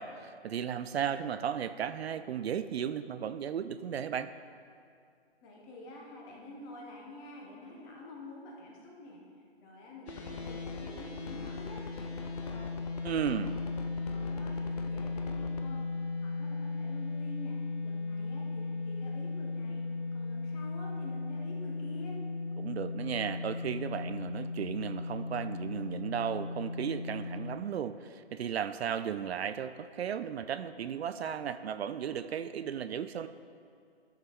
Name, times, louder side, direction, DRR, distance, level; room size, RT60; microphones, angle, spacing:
voice 1, 0.0-4.3 13.0-13.5 22.6-33.3, right 8 dB, 70° right, 12 dB, 0.5 m, -35 dB
voice 2, 5.4-9.2 9.6-12.7 13.3-13.6 14.1-15.9 16.2-17.6 17.8-19.8 20.1-22.2, left 2 dB, 20° left, -2 dB, 1.2 m, -48 dB
sound 1, 10.1-27.6, left 3 dB, 75° left, 1.5 m, -37 dB
sound 2, 10.1-15.6, left 6 dB, 35° left, 0.5 m, -44 dB
13.0 x 6.4 x 3.6 m, 2.3 s
hypercardioid pair, 155°, 33 cm